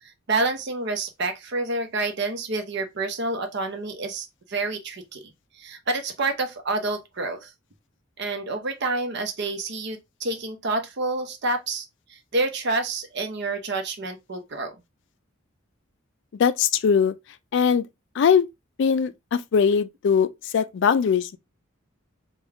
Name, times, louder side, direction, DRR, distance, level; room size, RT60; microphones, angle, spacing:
voice 1, 0.0-5.2 5.6-7.5 8.2-11.8 12.1-14.7, right 2 dB, 55° right, 0.7 m, -28 dB
voice 2, 16.4-17.1 17.5-17.9 18.2-18.5 18.8-21.4, left 6 dB, 60° left, 0.3 m, -21 dB
3.5 x 2.3 x 3.4 m
head